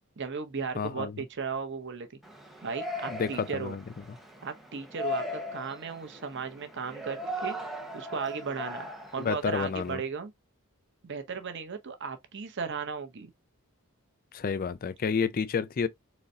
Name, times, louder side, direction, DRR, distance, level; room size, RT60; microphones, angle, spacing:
voice 1, 0.2-2.2 2.6-3.8 4.4-5.2 5.5-7.6 7.9-8.9 9.1-10.3 11.0-13.3, right 5 dB, 55° right, 0.8 m, -36 dB
voice 2, 0.8-1.2 3.1-4.2 9.2-10.0 14.3-15.9, left 6 dB, 40° left, 0.4 m, -30 dB
Yell, 2.2-9.9, left 1 dB, ahead, 0.8 m, -39 dB
4.0 x 3.1 x 2.6 m
head